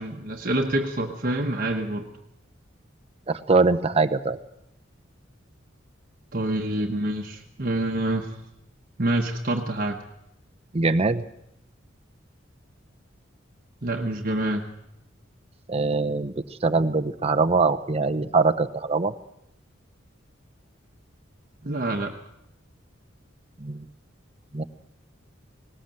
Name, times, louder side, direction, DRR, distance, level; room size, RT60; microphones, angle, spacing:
voice 1, 0.0-2.1 6.3-8.4 9.0-10.0 13.8-14.6 21.6-22.1, right 1 dB, 50° right, 2 dB, 1.2 m, -27 dB
voice 2, 3.3-4.4 10.7-11.2 15.7-19.1 23.6-23.9 24.5-24.6, right 3 dB, 30° right, 10 dB, 0.8 m, -23 dB
19.0 x 18.5 x 7.7 m, 0.81 s
head